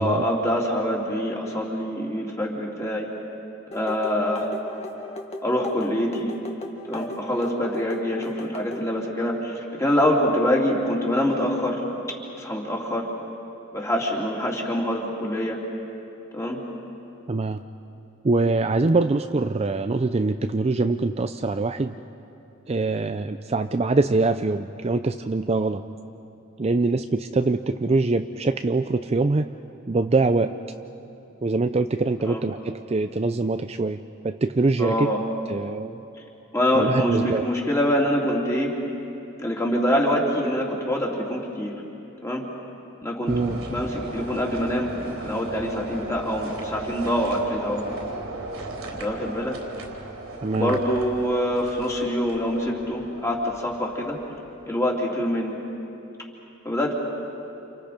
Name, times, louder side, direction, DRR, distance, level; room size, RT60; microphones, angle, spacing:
voice 1, 0.0-3.1 3.7-4.5 5.4-6.3 6.9-11.8 12.4-13.1 13.7-15.6 16.3-16.6 32.2-32.4 34.8-35.2 36.5-38.8 39.4-41.7 42.2-42.5 43.0-43.4 43.7-47.8 49.0-49.6 50.5-54.2 54.7-55.6 56.6-56.9, equal, 15° left, -2 dB, 3.3 m, -25 dB
sound 1, 3.7-8.9, left 1 dB, 30° left, 1.8 m, -37 dB
voice 2, 17.3-17.6 18.2-21.9 22.7-25.8 26.6-29.5 29.9-30.6 31.4-35.1 35.5-36.0 36.7-37.5 43.3-43.6 50.4-50.8, right 3 dB, 30° right, 8 dB, 0.5 m, -23 dB
sound 2, 43.3-54.5, right 2 dB, 90° right, 4.1 m, -37 dB
29.5 x 29.0 x 5.2 m, 2.9 s
head